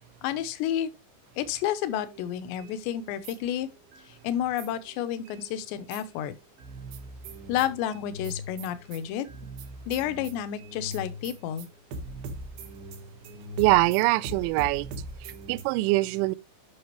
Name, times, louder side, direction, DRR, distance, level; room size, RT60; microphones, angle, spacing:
voice 1, 0.2-0.9 1.4-3.7 4.2-6.3 7.5-9.3 9.9-11.7, left 11 dB, 80° left, 2.7 m, -30 dB
sound 1, 2.1-4.1 4.6-6.2 6.6-15.6, right 1 dB, 70° right, 2.3 m, -41 dB
voice 2, 13.6-14.9 15.2-16.4, right 21 dB, 85° right, 2.7 m, -23 dB
11.0 x 5.7 x 3.1 m
omnidirectional pair, 5.7 m